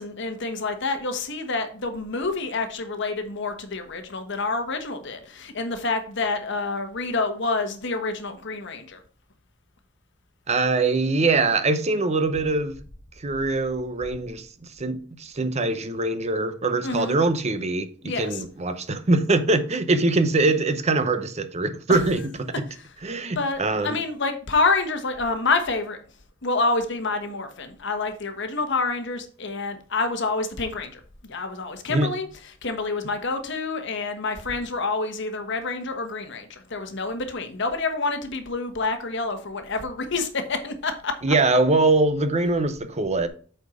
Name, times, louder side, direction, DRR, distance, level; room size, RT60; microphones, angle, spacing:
voice 1, 0.0-9.0 16.8-17.2 18.0-18.4 21.9-22.0 23.3-26.0 26.4-32.3 32.6-41.1, left 3 dB, 65° left, 1.3 m, -28 dB
voice 2, 10.5-12.8 13.2-14.5 14.8-22.5 23.0-24.0 31.9-32.1 41.2-43.3, right 3 dB, 35° right, 0.7 m, -23 dB
8.2 x 4.4 x 5.0 m
head